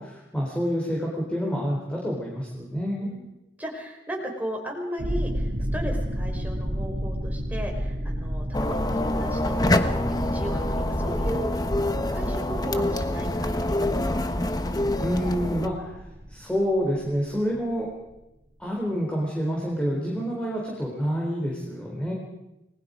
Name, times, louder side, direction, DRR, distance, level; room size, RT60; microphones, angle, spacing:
voice 1, 0.0-3.1 15.0-16.0 16.3-17.9 18.6-22.1, equal, 5° left, -2 dB, 4.1 m, -28 dB
voice 2, 3.6-9.9 10.2-11.6 12.1-14.2, equal, 10° right, 1 dB, 4.7 m, -36 dB
sound 1, 5.0-18.1, equal, 55° right, 3.0 m, -32 dB
sound 2, 8.5-15.7, left 1 dB, 20° left, 1.2 m, -26 dB
29.5 x 20.5 x 5.2 m, 0.93 s
head